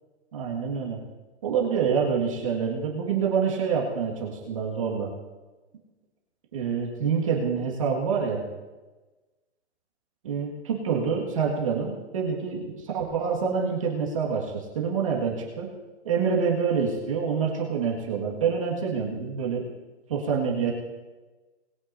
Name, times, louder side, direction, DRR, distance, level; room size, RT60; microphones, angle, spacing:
voice 1, 0.3-1.0 1.4-5.1 6.5-8.4 10.2-15.7 16.0-19.6 20.1-20.7, right 6 dB, 30° right, -3 dB, 1.9 m, -27 dB
20.5 x 9.5 x 2.7 m, 1.2 s
hypercardioid pair, 180°, 34 cm